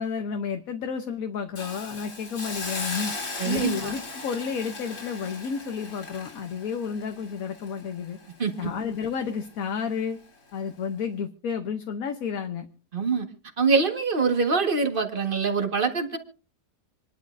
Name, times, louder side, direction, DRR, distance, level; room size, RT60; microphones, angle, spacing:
voice 1, 0.0-3.1 3.4-8.2 8.6-10.2 10.5-12.7, left 6 dB, 60° left, 5 dB, 1.3 m, -31 dB
Hiss, 1.6-8.6 9.0-9.1, left 3 dB, 80° left, 3.9 m, -37 dB
voice 2, 3.4-3.9 8.4-8.7 12.9-13.3 13.6-16.2, right 4 dB, 35° right, 5 dB, 1.7 m, -24 dB
27.5 x 11.5 x 2.6 m, 0.36 s
omnidirectional pair, 1.8 m